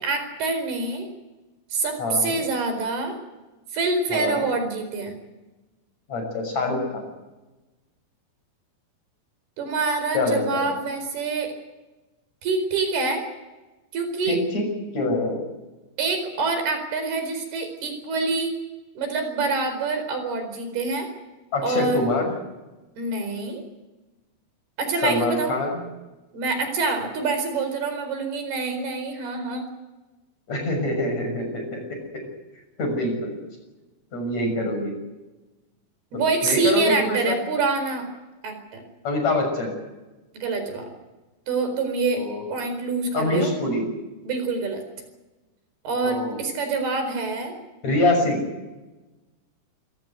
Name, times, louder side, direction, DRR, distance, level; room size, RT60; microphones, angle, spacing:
voice 1, 0.0-1.1 1.7-3.2 3.7-5.2 9.6-11.5 12.4-13.2 13.9-14.4 16.0-18.6 18.9-21.1 21.6-22.0 23.0-23.6 24.8-25.5 26.3-29.7 36.1-38.1 38.4-38.8 40.3-40.9 41.5-43.5 44.2-44.8 45.8-47.6, right 3 dB, 80° right, 7 dB, 6.3 m, -26 dB
voice 2, 2.0-2.4 4.1-4.5 6.1-7.1 10.1-10.7 14.3-14.7 14.9-15.4 21.5-22.3 25.0-25.8 30.5-31.9 32.1-32.2 32.8-33.3 34.1-34.9 36.4-37.4 39.0-39.7 42.2-42.4 43.1-43.9 46.0-46.4 47.8-48.5, left 2 dB, 45° left, 4 dB, 7.6 m, -25 dB
27.0 x 16.5 x 8.1 m, 1.1 s
omnidirectional pair, 4.5 m